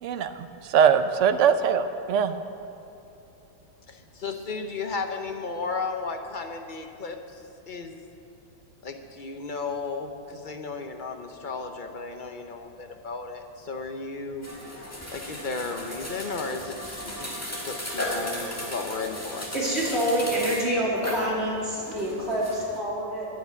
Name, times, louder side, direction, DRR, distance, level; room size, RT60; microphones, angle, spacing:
voice 1, 0.0-2.4, right 7 dB, 70° right, 10 dB, 0.7 m, -22 dB
voice 2, 3.9-8.0 8.8-14.5 14.8-19.5, left 4 dB, 45° left, 5 dB, 0.6 m, -34 dB
sound 1, 14.4-22.8, left 1 dB, 10° left, 1.7 m, -35 dB
voice 3, 19.5-23.3, right 1 dB, 35° right, -6 dB, 3.3 m, -27 dB
10.5 x 10.5 x 8.2 m, 3.0 s
omnidirectional pair, 2.0 m